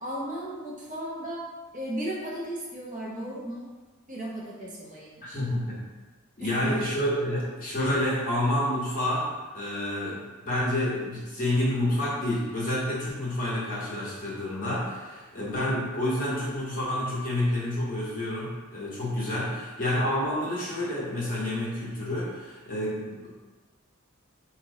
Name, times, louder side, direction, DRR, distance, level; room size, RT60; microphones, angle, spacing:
voice 1, 0.0-1.4 1.7-3.7 4.1-5.4 6.4-6.8, right 1 dB, 40° right, -4 dB, 0.8 m, -35 dB
voice 2, 5.2-5.8 6.4-23.3, left 1 dB, 40° left, -7 dB, 1.3 m, -29 dB
4.3 x 2.9 x 2.7 m, 1.3 s
head